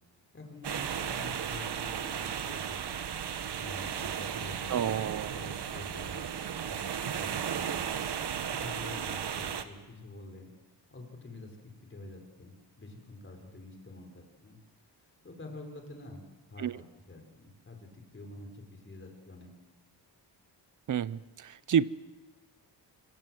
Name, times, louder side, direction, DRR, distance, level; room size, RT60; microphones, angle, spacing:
voice 1, 0.3-3.0 3.6-5.0 5.3-8.1 8.5-10.5 10.9-11.6 11.8-14.6 15.0-16.2 16.5-19.5, left 2 dB, 30° left, 3 dB, 5.1 m, -47 dB
sound 1, 0.6-9.6, right 8 dB, 70° right, 1.6 m, -35 dB
voice 2, 4.7-5.3 16.6-16.8 20.9-21.8, right 8 dB, 45° right, 19 dB, 0.7 m, -29 dB
26.5 x 23.0 x 7.8 m, 1.2 s
wide cardioid pair, 130°, 42 cm